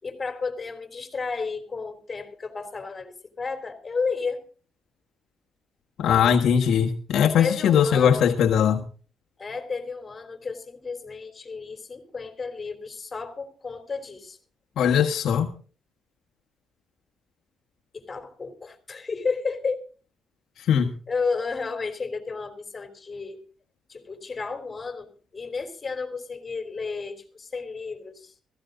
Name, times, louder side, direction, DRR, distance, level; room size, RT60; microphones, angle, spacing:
voice 1, 0.0-4.5 7.4-8.3 9.4-14.4 17.9-19.8 21.1-23.4 23.9-28.3, left 4 dB, 30° left, 8 dB, 3.4 m, -32 dB
voice 2, 6.0-8.8 14.8-15.5 20.7-20.9, left 8 dB, 70° left, 3 dB, 1.5 m, -20 dB
16.0 x 15.5 x 3.8 m, 0.38 s
cardioid pair, 90°, 0 cm